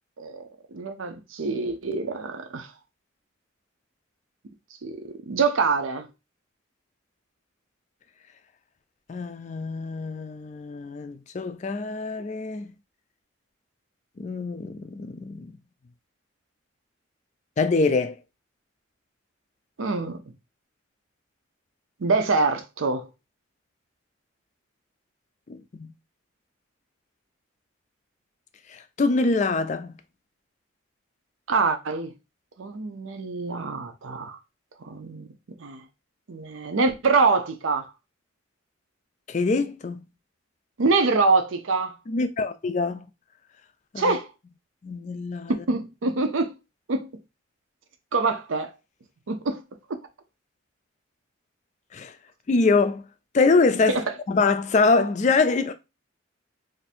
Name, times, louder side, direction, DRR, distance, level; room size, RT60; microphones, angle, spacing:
voice 1, 0.2-2.7 4.8-6.1 19.8-20.2 22.0-23.1 31.5-32.1 32.6-34.4 34.8-35.8 36.3-37.9 40.8-42.0 44.0-44.3 45.5-46.5 46.9-47.1 48.1-48.7 49.3-49.6 49.9-50.0 53.9-54.0, right 4 dB, 75° right, 0.6 m, -25 dB
voice 2, 9.1-12.7 14.2-15.5 17.6-18.2 25.5-25.9 28.7-29.9 39.3-40.0 42.1-43.1 43.9-44.2 44.8-45.5 51.9-52.1 52.5-53.0 53.3-54.0 54.3-55.7, left 3 dB, 35° left, 0.3 m, -24 dB
2.6 x 2.5 x 4.1 m
head